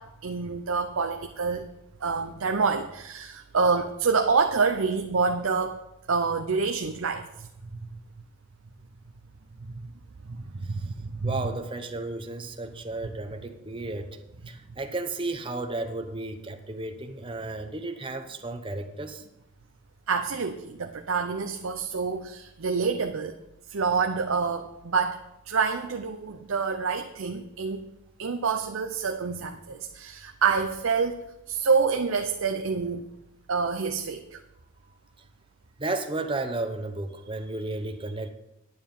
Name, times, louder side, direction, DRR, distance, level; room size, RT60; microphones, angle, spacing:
voice 1, 0.0-1.6 2.0-5.8 6.1-7.5 10.3-11.4 20.1-23.4 23.7-27.8 28.2-33.0 33.5-34.4, right 5 dB, 70° right, 6 dB, 0.6 m, -27 dB
voice 2, 11.2-14.1 14.5-19.2 35.8-38.3, right 2 dB, 25° right, 6 dB, 0.8 m, -33 dB
9.7 x 9.1 x 5.4 m, 0.89 s
head